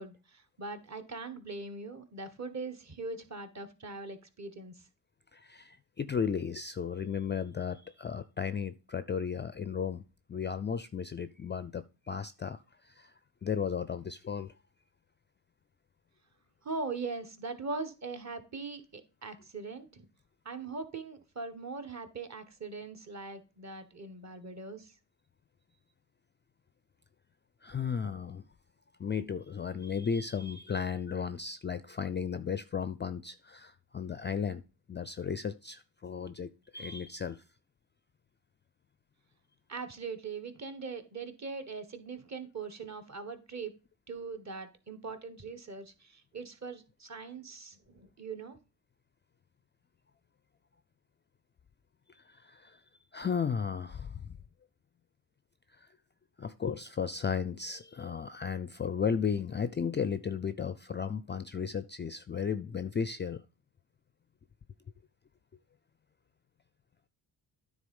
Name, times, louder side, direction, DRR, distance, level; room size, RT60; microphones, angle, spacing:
voice 1, 0.0-4.9 16.6-20.1 20.4-24.9 39.7-43.7 44.1-48.6, right 4 dB, 35° right, 1.4 m, -41 dB
voice 2, 5.3-10.0 10.3-13.1 13.4-14.5 27.6-28.4 29.0-34.6 34.9-37.4 52.1-52.8 53.1-54.4 55.8-55.9 56.4-63.4, left 6 dB, 25° left, 0.4 m, -35 dB
9.5 x 3.8 x 5.3 m
cardioid pair, 70°, 45 cm